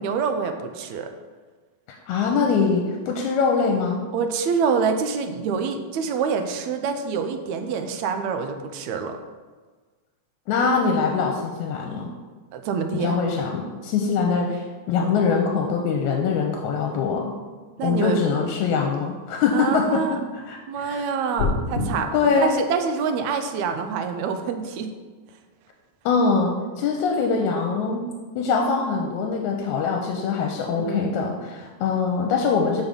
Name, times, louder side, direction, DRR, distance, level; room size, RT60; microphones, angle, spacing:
voice 1, 0.0-1.1 4.1-9.2 12.5-13.2 17.8-18.2 19.5-20.2 20.7-22.1 22.4-24.9 30.8-31.2, right 6 dB, 80° right, 7 dB, 1.9 m, -26 dB
voice 2, 2.1-4.0 10.5-12.1 12.9-17.2 17.8-20.0 20.3-21.0 22.1-22.6 26.1-28.1 28.4-32.8, left 5 dB, 80° left, 2 dB, 2.0 m, -23 dB
sound 1, 21.4-21.9, left 4 dB, 50° left, 1.3 m, -24 dB
6.3 x 5.5 x 5.2 m, 1.4 s
omnidirectional pair, 3.4 m